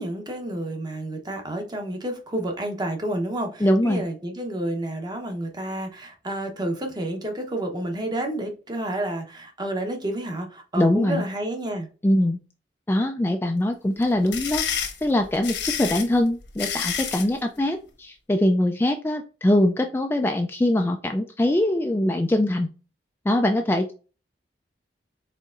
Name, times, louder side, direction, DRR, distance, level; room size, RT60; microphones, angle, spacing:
voice 1, 0.0-11.9, right 1 dB, 25° right, 0.9 m, -30 dB
voice 2, 3.6-4.0 10.8-11.2 12.0-12.4 12.9-22.7 23.3-23.9, left 1 dB, 15° left, 0.3 m, -22 dB
sound 1, 14.0-17.3, left 8 dB, 80° left, 1.1 m, -29 dB
4.5 x 4.1 x 2.4 m
head